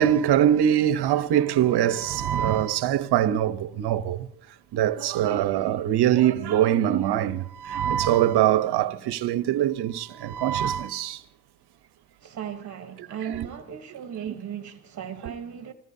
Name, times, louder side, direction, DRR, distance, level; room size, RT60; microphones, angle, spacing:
voice 1, 0.0-4.3 4.7-11.2 13.3-13.5 15.2-15.3, right 11 dB, 55° right, 1.0 m, -23 dB
voice 2, 12.2-15.7, right 8 dB, 35° right, 1.1 m, -36 dB
27.5 x 19.0 x 2.8 m
supercardioid pair, 100°, 48 cm